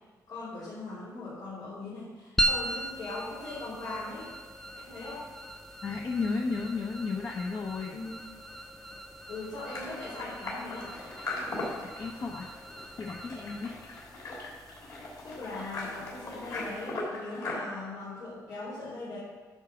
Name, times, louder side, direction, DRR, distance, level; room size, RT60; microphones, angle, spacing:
voice 1, 0.3-4.3 4.8-5.3 7.9-8.2 9.3-11.0 15.2-19.2, left 2 dB, 85° left, -10 dB, 3.3 m, -40 dB
sound 1, 2.4-17.0, right 1 dB, 5° left, 0.6 m, -39 dB
voice 2, 5.8-8.0 11.8-12.5 13.0-13.8, left 4 dB, 45° left, 1 dB, 0.7 m, -33 dB
sound 2, 9.7-17.6, left 2 dB, 65° left, 3.2 m, -39 dB
10.0 x 4.9 x 6.7 m, 1.3 s
cardioid pair, 130°, 7 cm